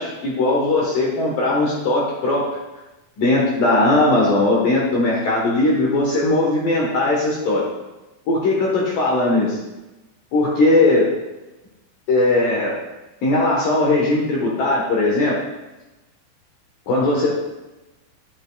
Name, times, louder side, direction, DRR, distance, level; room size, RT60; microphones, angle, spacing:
voice 1, 0.0-2.4 3.2-7.6 8.3-9.6 10.3-11.1 12.1-12.7 13.2-15.4 16.9-17.3, left 2 dB, 70° left, -4 dB, 2.1 m, -19 dB
10.5 x 9.0 x 2.3 m, 1.1 s
omnidirectional pair, 5.7 m